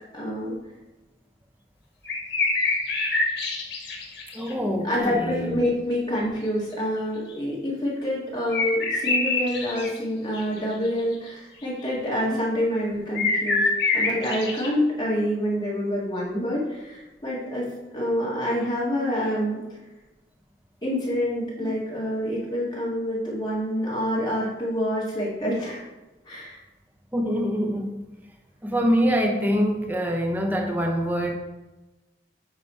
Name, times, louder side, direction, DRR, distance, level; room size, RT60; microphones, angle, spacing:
voice 1, 0.1-0.5 4.8-13.7 13.9-19.6 20.8-25.8 26.3-26.6, equal, 25° left, -6 dB, 2.0 m, -27 dB
sound 1, 2.0-4.5 7.3-7.4 8.5-10.0 10.3-11.0 11.3-11.4 13.1-14.7, left 3 dB, 80° left, 1.4 m, -25 dB
voice 2, 4.3-5.6 21.6-21.7 27.1-28.0 28.6-31.4, equal, 10° right, 2 dB, 0.7 m, -25 dB
8.8 x 3.2 x 4.3 m, 1.1 s
head